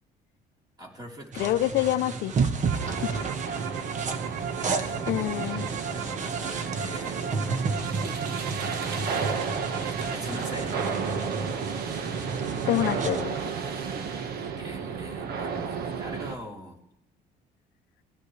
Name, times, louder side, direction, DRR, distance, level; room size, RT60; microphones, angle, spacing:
voice 1, 0.8-1.5 2.7-3.1 4.7-7.8 9.8-11.1 14.0-16.8, right 1 dB, 25° right, -1 dB, 3.4 m, -43 dB
voice 2, 1.3-2.3 3.0-3.2 5.1-5.7 12.7-13.4, left 14 dB, 80° left, 12 dB, 0.6 m, -26 dB
sound 1, 1.3-13.2, right 4 dB, 45° right, 1.3 m, -32 dB
sound 2, 2.3-10.1, right 8 dB, 90° right, 0.8 m, -38 dB
sound 3, 2.8-16.4, right 6 dB, 65° right, 1.4 m, -33 dB
23.5 x 16.0 x 3.3 m, 0.77 s
cardioid pair, 110°, 17 cm